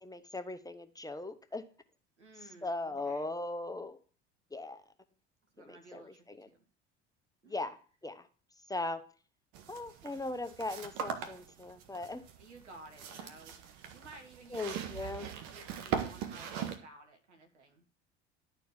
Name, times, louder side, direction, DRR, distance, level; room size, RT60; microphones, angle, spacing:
voice 1, 0.0-1.7 2.6-4.0 4.5-4.8 5.6-6.5 7.5-7.8 8.0-8.3 8.7-9.0 9.7-12.2 14.5-15.3, left 2 dB, 10° left, 8 dB, 1.1 m, -39 dB
voice 2, 2.2-3.3 5.5-6.6 7.4-7.7 12.3-17.8, right 2 dB, 90° right, 4 dB, 1.7 m, -55 dB
sound 1, 9.5-16.8, right 8 dB, 65° right, 1.5 m, -41 dB
11.5 x 4.5 x 7.3 m, 0.40 s
hypercardioid pair, 65°, 34 cm